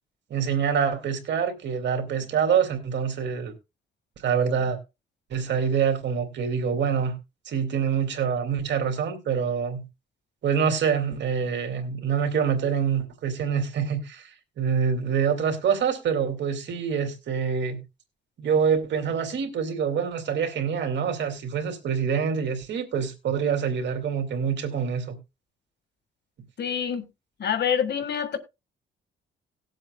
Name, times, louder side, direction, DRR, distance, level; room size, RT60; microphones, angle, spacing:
voice 1, 0.3-3.5 4.2-4.8 5.3-7.1 7.5-9.8 10.4-14.3 14.6-17.8 18.4-25.2, right 7 dB, 65° right, 2.3 m, -26 dB
voice 2, 26.6-27.1 27.4-28.4, left 8 dB, 60° left, 1.7 m, -26 dB
19.0 x 7.6 x 2.2 m
cardioid pair, 90°, 20 cm